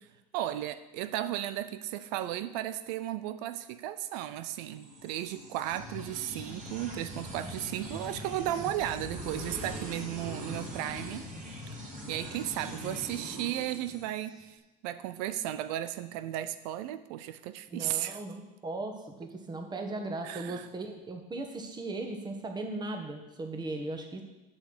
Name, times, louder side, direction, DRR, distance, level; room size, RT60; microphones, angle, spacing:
voice 1, 0.3-11.3 12.1-14.6 14.8-18.2 20.2-20.7, right 13 dB, 85° right, 13 dB, 0.6 m, -35 dB
sound 1, 4.7-14.4, equal, 40° right, 3.9 m, -42 dB
voice 2, 17.7-24.2, right 2 dB, 20° right, 3 dB, 1.5 m, -37 dB
7.6 x 6.3 x 7.9 m, 1.1 s
supercardioid pair, 105°, 20 cm